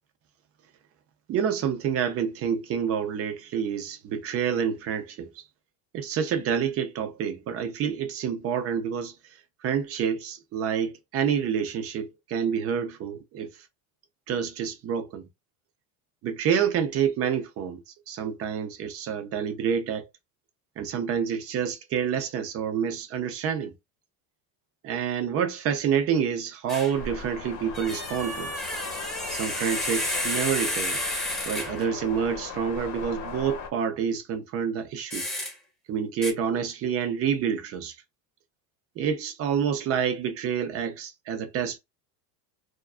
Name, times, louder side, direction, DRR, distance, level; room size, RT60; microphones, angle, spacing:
voice 1, 1.3-5.4 5.9-9.1 9.6-13.5 14.3-15.3 16.2-20.0 20.8-23.7 24.8-28.5 29.3-31.0 31.5-35.2 35.9-37.9 39.0-41.8, right 7 dB, 30° right, 0.5 m, -28 dB
sound 1, 26.7-27.0 27.7-31.9 35.1-35.5 36.2-36.3, equal, ahead, 0.9 m, -31 dB
sound 2, 26.9-33.7, left 5 dB, 40° left, 0.8 m, -38 dB
2.4 x 2.2 x 2.3 m
supercardioid pair, 135°, 46 cm